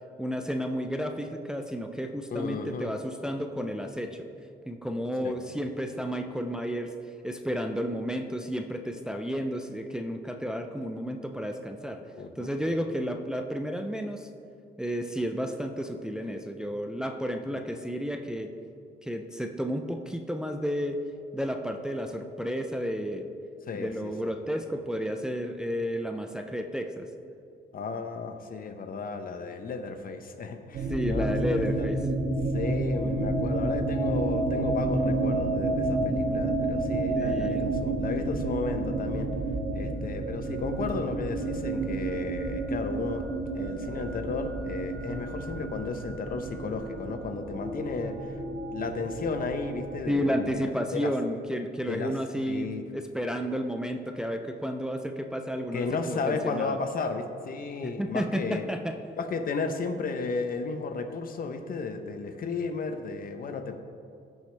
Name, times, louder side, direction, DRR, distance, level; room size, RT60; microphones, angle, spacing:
voice 1, 0.2-4.3 4.7-6.9 7.2-12.0 12.4-14.3 14.8-18.5 19.0-21.0 21.3-23.3 23.7-27.1 30.9-32.0 37.1-37.7 50.1-56.8 58.0-58.9, equal, 5° right, 4 dB, 0.5 m, -32 dB
voice 2, 2.3-2.9 5.2-5.4 12.2-12.5 17.5-17.6 23.7-24.3 27.7-31.9 32.5-39.3 39.7-43.3 43.5-48.4 48.7-50.5 50.9-51.1 51.9-52.1 52.5-52.8 55.7-58.7 59.2-63.8, left 4 dB, 50° left, 7 dB, 0.8 m, -34 dB
sound 1, 30.7-50.6, right 2 dB, 70° right, 2.2 m, -30 dB
15.0 x 6.3 x 3.4 m, 2.5 s
cardioid pair, 110°, 18 cm